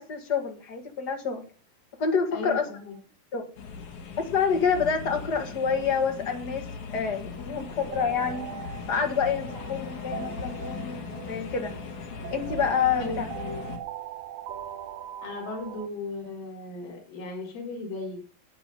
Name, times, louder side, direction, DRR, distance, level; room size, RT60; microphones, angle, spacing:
voice 1, 0.0-1.4 2.0-2.7 3.3-3.5 4.2-8.5 8.9-11.7 12.3-13.3, left 6 dB, 35° left, 4 dB, 1.9 m, -27 dB
voice 2, 2.3-3.0 13.0-13.7 15.2-18.2, left 3 dB, 85° left, -4 dB, 5.4 m, -36 dB
sound 1, 3.6-13.8, left 5 dB, 60° left, 3.4 m, -38 dB
sound 2, 7.7-15.9, right 12 dB, 80° right, 1.5 m, -41 dB
12.0 x 8.5 x 5.5 m, 0.36 s
omnidirectional pair, 4.0 m